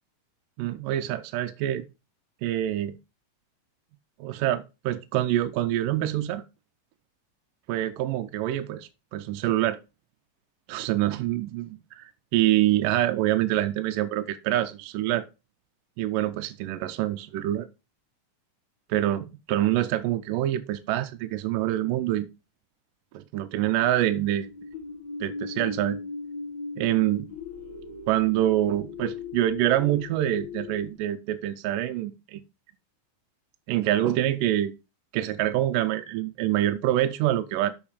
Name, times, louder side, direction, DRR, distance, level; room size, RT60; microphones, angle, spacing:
voice 1, 0.6-1.8 2.4-3.0 4.2-6.4 7.7-9.8 10.7-15.3 16.0-17.7 18.9-22.3 23.1-24.5 25.2-26.0 26.8-27.3 28.1-32.4 33.7-34.7 35.1-37.7, right 13 dB, 80° right, 2.2 m, -26 dB
sound 1, 23.8-30.9, left 4 dB, 65° left, 0.9 m, -38 dB
7.2 x 5.5 x 4.8 m
omnidirectional pair, 4.0 m